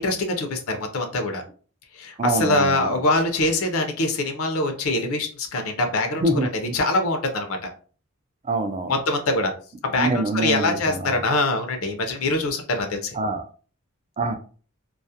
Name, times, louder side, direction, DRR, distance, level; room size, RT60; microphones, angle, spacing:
voice 1, 0.0-1.4 1.9-6.2 6.7-7.7 8.9-9.5 9.8-13.2, left 2 dB, 80° left, 0.5 m, -24 dB
voice 2, 2.2-2.9 6.2-6.8 8.5-8.9 10.0-11.0 13.1-13.4 14.2-14.4, right 2 dB, 30° right, 0.3 m, -25 dB
2.3 x 2.0 x 2.7 m
head